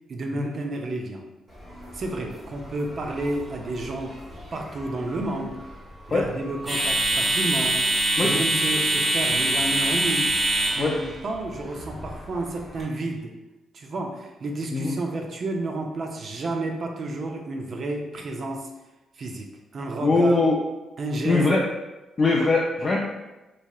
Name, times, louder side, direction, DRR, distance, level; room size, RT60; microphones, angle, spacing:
voice 1, 0.1-1.3 1.9-4.2 4.5-5.6 6.1-7.8 8.2-10.3 10.8-13.3 13.7-18.7 19.2-19.5 19.7-20.4 21.0-21.5, right 2 dB, 55° right, 3 dB, 0.5 m, -31 dB
sound 1, 1.5-12.8, right 1 dB, 20° right, 1.3 m, -26 dB
voice 2, 20.0-20.6 21.2-21.6 22.2-23.0, left 3 dB, 40° left, -2 dB, 0.4 m, -21 dB
3.0 x 2.7 x 2.3 m, 1.0 s
cardioid pair, 70°, 0 cm